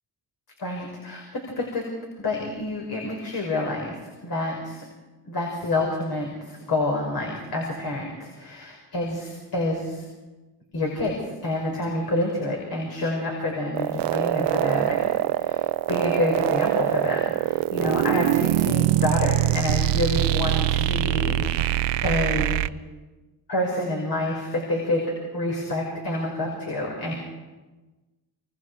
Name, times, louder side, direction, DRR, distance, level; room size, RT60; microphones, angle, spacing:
voice 1, 0.6-1.8 2.2-3.9 4.2-4.8 5.2-10.0 10.7-11.2 11.4-15.1 15.3-15.6 15.9-21.7 22.0-22.6 23.5-25.0 25.3-27.1, left 1 dB, 65° left, -1 dB, 5.6 m, -28 dB
sound 1, 13.7-22.7, right 15 dB, 90° right, 0.6 m, -23 dB
28.0 x 24.5 x 4.8 m, 1.2 s
cardioid pair, 95°, 41 cm